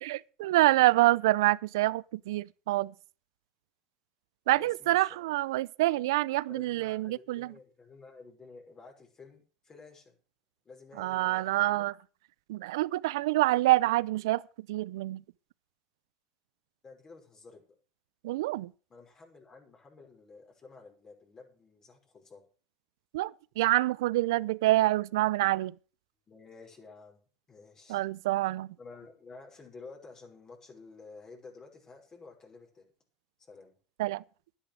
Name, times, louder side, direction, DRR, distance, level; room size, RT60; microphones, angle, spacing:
voice 1, 0.0-2.9 4.5-7.5 11.0-11.9 12.5-14.4 14.7-15.2 18.2-18.7 23.1-25.7 27.9-28.7 34.0-34.2, right 17 dB, 85° right, 0.5 m, -26 dB
voice 2, 4.5-5.3 6.5-10.1 10.6-11.9 16.8-17.6 18.9-22.5 26.3-27.2 27.5-28.0 28.8-32.9 33.5-33.7, left 4 dB, 30° left, 5.6 m, -52 dB
11.5 x 10.0 x 6.6 m
supercardioid pair, 100°, 2 cm